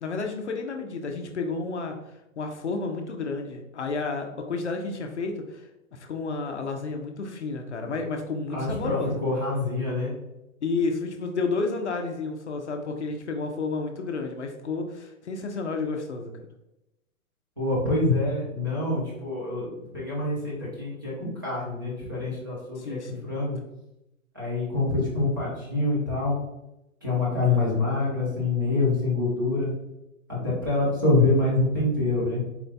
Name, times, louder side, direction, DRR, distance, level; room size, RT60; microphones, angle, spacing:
voice 1, 0.0-9.2 10.6-16.3 22.8-23.3 27.4-27.8, left 3 dB, 55° left, 3 dB, 0.6 m, -31 dB
voice 2, 8.5-10.1 17.6-23.0 23.2-23.6 24.3-26.3 27.0-29.7 30.3-32.4, left 2 dB, 15° right, -7 dB, 0.6 m, -26 dB
4.3 x 2.2 x 4.0 m, 0.91 s
hypercardioid pair, 180°, 43 cm